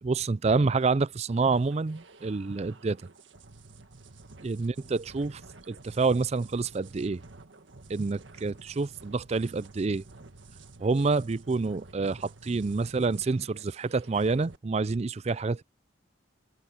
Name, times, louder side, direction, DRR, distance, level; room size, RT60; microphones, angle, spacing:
voice 1, 0.0-3.0 4.4-5.4 5.7-7.2 7.9-10.0 10.8-15.6, right 4 dB, 35° right, 0.4 m, -28 dB
sound 1, 1.3-14.6, right 3 dB, 80° right, 1.7 m, -51 dB
head